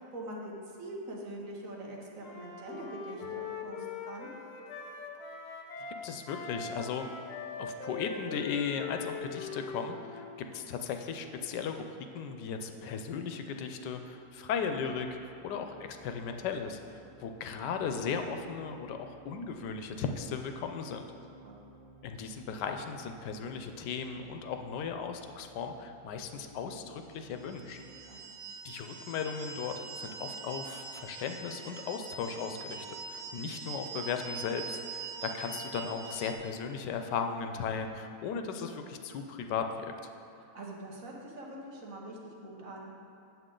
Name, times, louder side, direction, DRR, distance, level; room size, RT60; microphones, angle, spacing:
voice 1, 0.0-4.3 21.4-21.6 28.1-28.4 40.4-42.9, right 1 dB, 55° right, -2 dB, 1.3 m, -44 dB
Wind instrument woodwind instrument, 2.2-6.0 6.3-10.4, left 5 dB, 75° left, 1.3 m, -42 dB
voice 2, 6.0-7.0 7.6-10.2 10.5-11.8 12.1-16.8 17.2-21.1 22.0-27.8 28.6-32.9 33.1-39.9, left 6 dB, 90° left, 6 dB, 1.2 m, -36 dB
sound 1, 13.6-28.0, right 3 dB, 30° right, 1.6 m, -58 dB
sound 2, 27.4-36.3, right 5 dB, 75° right, 1.5 m, -43 dB
8.1 x 7.4 x 3.8 m, 2.6 s
omnidirectional pair, 1.8 m